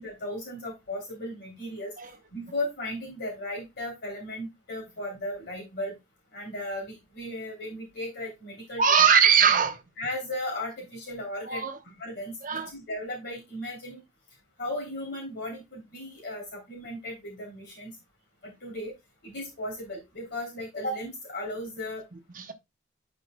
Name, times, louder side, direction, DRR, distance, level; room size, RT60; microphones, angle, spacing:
voice 1, 0.0-1.9 2.3-5.9 6.3-8.8 9.4-9.5 10.0-14.0 14.6-17.9 18.4-18.9 19.2-22.0, left 1 dB, 55° left, 3.0 m, -36 dB
voice 2, 8.8-9.8 11.5-11.8 12.4-12.7 22.4-22.5, right 7 dB, 40° right, 1.0 m, -21 dB
11.5 x 5.4 x 2.2 m
head